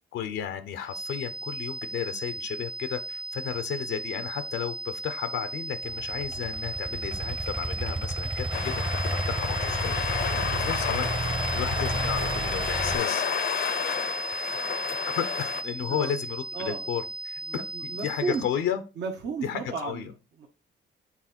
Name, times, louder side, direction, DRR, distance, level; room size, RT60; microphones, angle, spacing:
voice 1, 0.1-13.2 14.3-14.6 15.2-18.8 19.4-20.1, left 9 dB, 85° left, 10 dB, 0.8 m, -33 dB
sound 1, 0.9-18.6, right 2 dB, 5° right, 0.3 m, -36 dB
Idling / Accelerating revving vroom, 5.8-13.0, right 2 dB, 25° right, 1.0 m, -32 dB
sound 2, 8.5-15.6, left 8 dB, 55° left, 0.7 m, -31 dB
voice 2, 16.5-16.9 17.5-18.4 19.0-20.5, right 4 dB, 60° right, 1 dB, 1.1 m, -34 dB
7.3 x 3.5 x 4.3 m, 0.31 s
cardioid pair, 90°, 20 cm